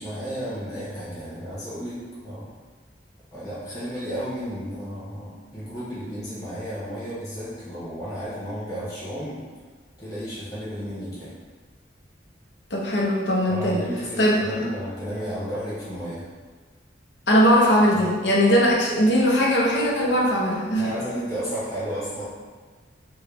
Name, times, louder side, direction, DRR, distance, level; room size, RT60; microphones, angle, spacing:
voice 1, 0.0-2.5 3.3-9.5 10.0-11.3 13.5-16.2 17.9-18.1 20.0-20.1 20.8-22.2, equal, 20° left, -10 dB, 1.4 m, -33 dB
voice 2, 12.7-13.9 14.2-14.6 17.3-20.8, equal, 70° left, -3 dB, 0.8 m, -20 dB
4.3 x 2.2 x 3.5 m, 1.5 s
head